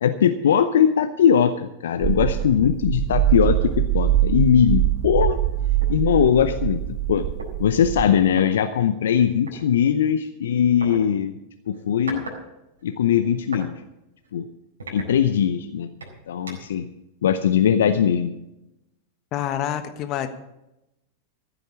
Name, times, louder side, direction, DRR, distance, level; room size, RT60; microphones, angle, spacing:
voice 1, 0.0-5.4 5.9-6.8 7.1-7.3 7.6-11.3 11.7-12.2 12.8-13.7 14.3-14.5 14.9-15.9 16.3-16.9 17.2-18.3, left 8 dB, 70° left, 9 dB, 0.6 m, -20 dB
sound 1, 2.0-8.1, right 13 dB, 40° right, 1.0 m, -23 dB
sound 2, 2.4-2.6 3.0-3.2 3.6-3.9 4.8-4.9 5.2-6.6 7.4-7.5 8.3-8.5 9.5-9.6 10.8-11.0 11.7-12.4 12.7-13.7 14.2-14.3 14.8-15.6 16.0-16.8, right 2 dB, 80° right, 4.3 m, -39 dB
voice 2, 19.3-20.3, left 11 dB, 40° left, 9 dB, 1.4 m, -27 dB
14.5 x 8.1 x 7.2 m, 0.92 s
figure-of-eight pair, 95°, 0 cm